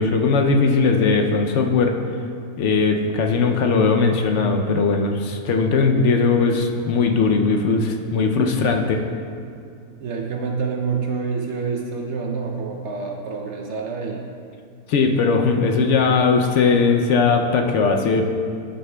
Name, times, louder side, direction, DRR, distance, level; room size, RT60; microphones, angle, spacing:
voice 1, 0.0-1.9 2.6-9.0 14.9-18.2, left 4 dB, 65° left, 3 dB, 0.8 m, -19 dB
voice 2, 10.0-14.2, right 5 dB, 65° right, 1 dB, 0.7 m, -27 dB
12.5 x 6.4 x 2.2 m, 2.4 s
omnidirectional pair, 1.6 m